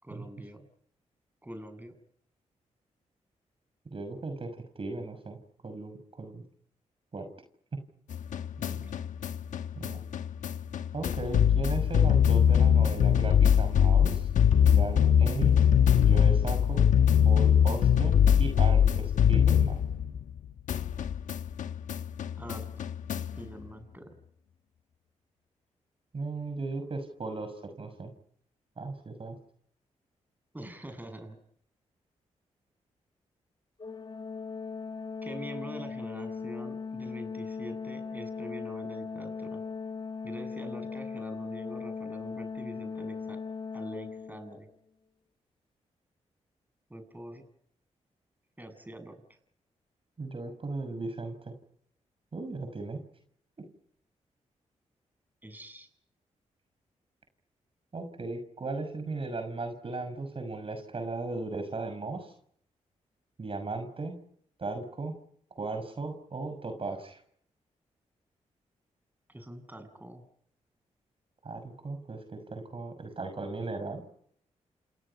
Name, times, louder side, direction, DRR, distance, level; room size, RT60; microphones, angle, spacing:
voice 1, 0.0-0.7 1.4-1.9 8.6-8.9 22.4-22.7 23.4-24.1 30.5-31.4 35.2-39.6 40.2-43.4 43.7-44.7 46.9-47.4 48.6-49.1 55.4-55.9 69.3-70.2, right 1 dB, 15° right, 8 dB, 7.9 m, -44 dB
voice 2, 3.9-4.5 4.8-5.4 5.6-6.4 7.1-7.3 9.8-10.0 10.9-14.3 14.6-15.7 15.9-16.8 17.2-19.8 26.1-27.5 27.8-28.1 28.8-29.4 50.2-51.5 52.3-53.0 57.9-62.3 63.4-64.2 64.6-65.1 65.6-67.2 71.4-74.0, right 3 dB, 45° right, 7 dB, 6.1 m, -36 dB
sound 1, 8.1-20.4 20.7-23.4, left 8 dB, 80° left, 1.2 m, -23 dB
Organ, 33.8-44.7, left 5 dB, 35° left, 1.5 m, -38 dB
30.0 x 27.0 x 5.8 m, 0.66 s
cardioid pair, 65°, 13 cm